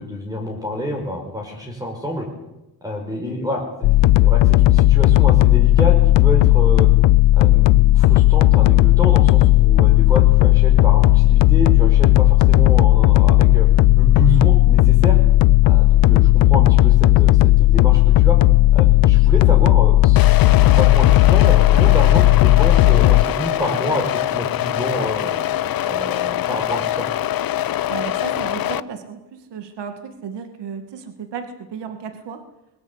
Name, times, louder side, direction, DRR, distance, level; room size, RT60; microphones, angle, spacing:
voice 1, 0.0-2.3 2.8-6.9 7.3-13.7 13.9-15.2 15.6-18.4 18.7-25.4 25.8-27.1, left 1 dB, 10° right, 1 dB, 5.1 m, -27 dB
sound 1, 3.8-23.2, left 16 dB, 85° left, 0.7 m, -13 dB
sound 2, 20.2-28.8, left 12 dB, 55° left, 0.8 m, -24 dB
voice 2, 27.9-32.4, right 6 dB, 75° right, 7 dB, 2.3 m, -34 dB
22.0 x 18.0 x 8.2 m, 0.97 s
cardioid pair, 105°, 42 cm